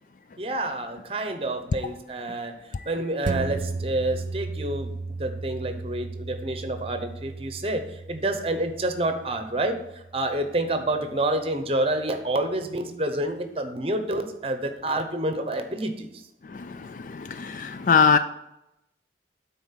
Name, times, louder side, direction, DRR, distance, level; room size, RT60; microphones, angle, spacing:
voice 1, 0.4-2.6 2.9-4.9 5.2-16.2, right 1 dB, 35° right, 7 dB, 0.8 m, -28 dB
sound 1, 3.2-12.1 12.5-12.6, right 3 dB, 50° right, 0.3 m, -36 dB
voice 2, 16.4-18.2, left 5 dB, 45° left, 10 dB, 0.3 m, -23 dB
9.4 x 4.1 x 5.7 m, 0.86 s
head